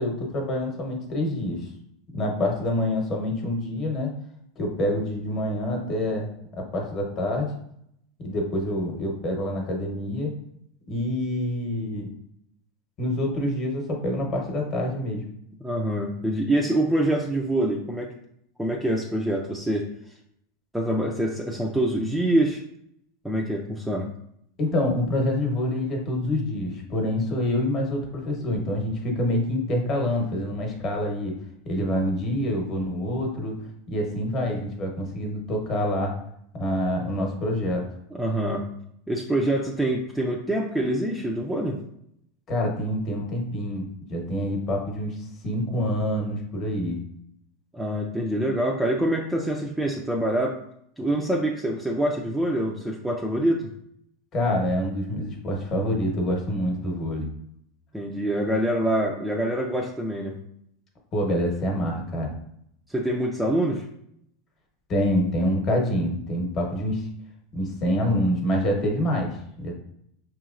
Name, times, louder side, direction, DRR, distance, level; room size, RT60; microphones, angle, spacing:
voice 1, 0.0-1.7 2.1-4.1 4.6-7.5 8.2-10.3 10.9-12.1 13.0-15.2 24.6-31.4 31.6-33.5 33.9-36.2 36.5-37.8 42.5-43.8 44.1-45.2 45.4-47.0 54.3-57.3 61.1-62.3 64.9-67.1 67.5-69.8, left 1 dB, 30° left, 1 dB, 0.9 m, -26 dB
voice 2, 15.6-18.1 18.6-19.9 20.7-22.6 23.2-24.1 38.1-38.7 39.1-41.8 47.7-50.6 51.0-53.7 57.9-60.4 62.9-63.9, right 1 dB, 5° right, -1 dB, 0.3 m, -25 dB
5.4 x 3.0 x 2.4 m, 0.73 s
supercardioid pair, 160°, 0 cm